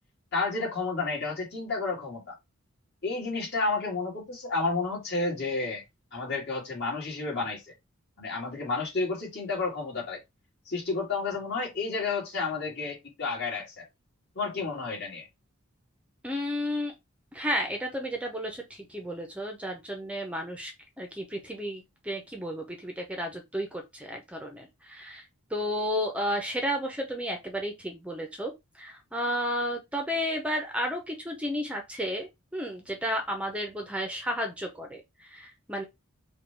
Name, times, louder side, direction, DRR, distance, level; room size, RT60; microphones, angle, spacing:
voice 1, 0.3-2.4 3.0-5.8 6.1-7.7 8.2-10.2 10.7-13.9 14.3-15.3, left 3 dB, 50° left, 2.5 m, -31 dB
voice 2, 16.2-16.9 17.3-20.7 21.0-25.2 25.5-28.5 28.8-35.8, equal, 5° right, 0.7 m, -32 dB
5.0 x 2.4 x 4.5 m
head